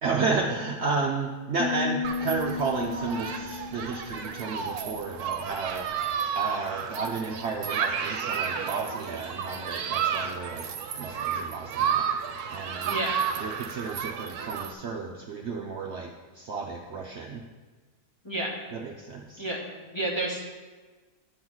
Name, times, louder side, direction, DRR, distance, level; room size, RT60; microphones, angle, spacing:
voice 1, 0.0-10.6 11.0-12.1 12.5-13.0 13.4-17.4 18.7-19.4, right 4 dB, 60° right, 1 dB, 0.8 m, -32 dB
sound 1, 1.6-5.0, left 6 dB, 75° left, 1.4 m, -34 dB
Human group actions, 2.0-14.7, right 7 dB, 75° right, 1.1 m, -32 dB
voice 2, 12.8-13.2 18.2-18.6 19.4-20.4, right 1 dB, 20° left, -3 dB, 1.1 m, -31 dB
11.0 x 3.9 x 6.1 m, 1.3 s
omnidirectional pair, 1.7 m